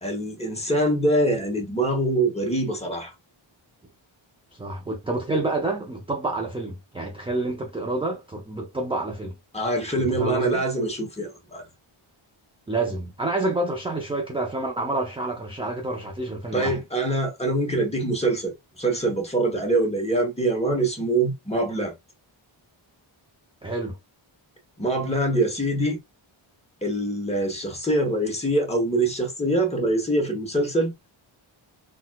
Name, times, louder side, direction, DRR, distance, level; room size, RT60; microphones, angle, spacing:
voice 1, 0.0-3.1 9.5-11.6 16.5-21.9 24.8-26.0 26.8-30.9, right 1 dB, 15° left, 0.9 m, -24 dB
voice 2, 4.5-9.4 10.0-10.6 12.7-16.8 23.6-24.0, right 2 dB, 10° right, 0.4 m, -28 dB
4.0 x 2.2 x 2.2 m
wide cardioid pair, 135°, 49 cm